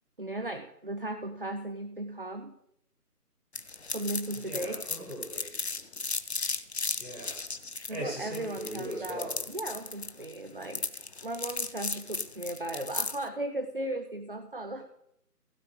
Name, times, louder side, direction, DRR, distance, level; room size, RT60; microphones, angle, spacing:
voice 1, 0.2-2.5 3.9-4.8 7.9-10.9 11.2-14.9, right 1 dB, 35° right, 7 dB, 0.6 m, -36 dB
sound 1, 3.5-13.3, left 3 dB, 45° left, 0.6 m, -35 dB
voice 2, 4.3-5.6 6.9-7.4 7.9-9.4, equal, 5° right, -7 dB, 1.4 m, -39 dB
16.0 x 7.4 x 4.8 m, 0.76 s
figure-of-eight pair, 155°, 47 cm